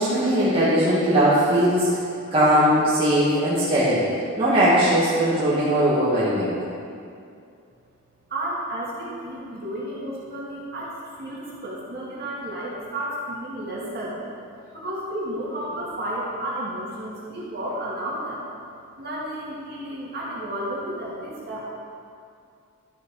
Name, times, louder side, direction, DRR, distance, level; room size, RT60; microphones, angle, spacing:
voice 1, 0.0-2.0 2.3-4.1 4.4-6.5, equal, 25° right, -10 dB, 1.7 m, -19 dB
voice 2, 8.3-18.5 19.0-21.6, right 1 dB, 45° right, -6 dB, 2.3 m, -32 dB
12.5 x 6.3 x 4.8 m, 2.5 s
head